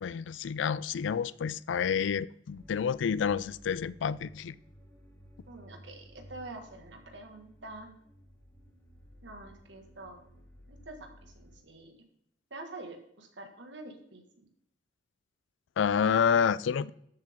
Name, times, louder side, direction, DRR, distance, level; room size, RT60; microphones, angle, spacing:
voice 1, 0.0-4.5 15.8-16.9, left 7 dB, 75° left, 0.4 m, -29 dB
sound 1, 2.5-11.6, equal, 15° left, 4.2 m, -55 dB
voice 2, 5.5-8.0 9.2-10.2 10.7-12.0 12.5-14.2, right 2 dB, 75° right, 1.9 m, -46 dB
13.5 x 7.6 x 3.7 m
head